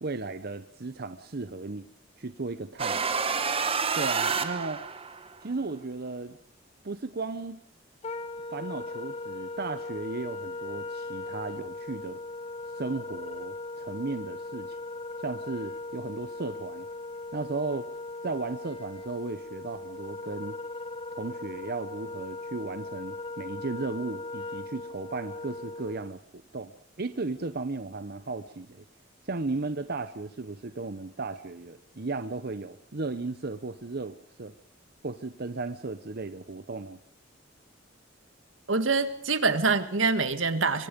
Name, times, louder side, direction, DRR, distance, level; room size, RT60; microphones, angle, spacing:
voice 1, 0.0-1.9 2.2-3.2 3.9-4.8 5.4-6.4 6.8-7.6 8.5-12.2 12.7-14.8 15.2-16.9 17.3-17.9 18.2-20.6 21.1-26.7 27.0-28.8 29.2-34.5 35.0-37.0, right 3 dB, 55° right, 10 dB, 0.9 m, -35 dB
sound 1, 2.8-5.3, right 5 dB, 30° right, 1.3 m, -28 dB
Wind instrument woodwind instrument, 8.0-26.1, left 2 dB, 35° left, 1.3 m, -39 dB
voice 2, 38.7-40.9, right 4 dB, 85° right, 10 dB, 1.8 m, -25 dB
25.0 x 24.0 x 5.3 m, 0.65 s
head